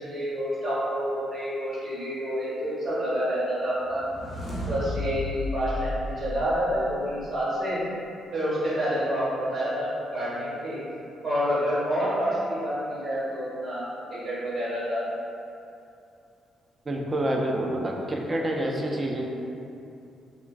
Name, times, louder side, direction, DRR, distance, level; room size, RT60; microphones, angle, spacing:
voice 1, 0.0-4.0 4.7-7.8 8.3-10.8 11.2-13.8 14.2-15.0, equal, 65° right, -11 dB, 1.0 m, -28 dB
sound 1, 3.8-7.1, left 1 dB, 40° left, 0.5 m, -34 dB
voice 2, 16.9-19.3, right 1 dB, 30° right, 0 dB, 0.4 m, -27 dB
3.1 x 2.3 x 2.3 m, 2.6 s
cardioid pair, 90°, 0 cm